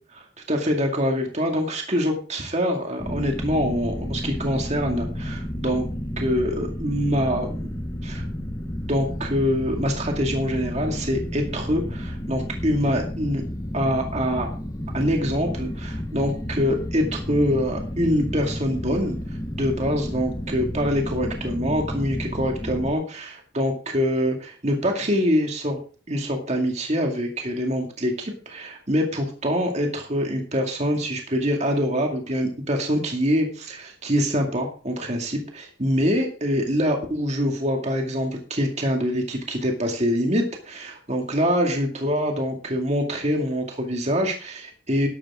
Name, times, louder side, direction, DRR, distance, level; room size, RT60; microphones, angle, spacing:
voice 1, 0.1-5.9 6.2-7.7 8.0-8.2 8.9-13.4 13.7-14.5 14.9-19.2 19.6-25.8 26.1-45.1, equal, 35° right, 2 dB, 2.2 m, -25 dB
sound 1, 3.0-22.9, equal, 20° left, 1.1 m, -31 dB
12.0 x 12.0 x 3.7 m, 0.39 s
head